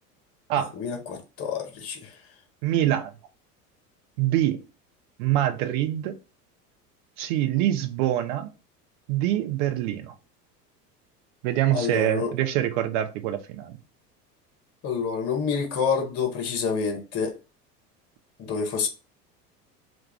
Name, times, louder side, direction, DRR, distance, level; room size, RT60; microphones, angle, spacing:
voice 1, 0.5-2.1 11.7-12.3 14.8-17.3 18.4-18.9, left 6 dB, 30° left, 0.8 m, -28 dB
voice 2, 2.6-3.1 4.2-4.6 5.2-6.1 7.2-8.5 9.1-10.1 11.4-13.7, right 12 dB, 50° right, 0.5 m, -25 dB
2.3 x 2.3 x 3.3 m
figure-of-eight pair, 75°, 47 cm